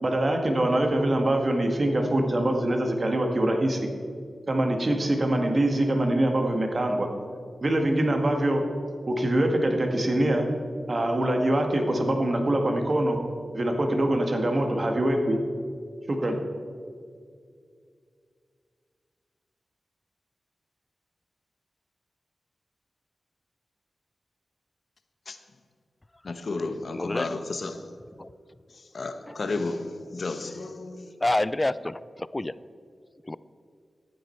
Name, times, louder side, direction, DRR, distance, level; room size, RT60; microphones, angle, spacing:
voice 1, 0.0-3.8 4.5-7.1 7.6-8.6 9.1-10.5 10.9-13.2 13.5-15.4 16.1-16.4, right 1 dB, 45° right, 1.7 m, -24 dB
voice 2, 26.2-27.8 28.9-31.1, left 3 dB, 65° left, 1.0 m, -32 dB
voice 3, 26.9-27.3 28.2-28.3 29.3-29.4 31.2-32.5 33.2-33.4, left 1 dB, 25° left, 0.4 m, -28 dB
13.5 x 9.4 x 4.5 m
cardioid pair, 60°, 0 cm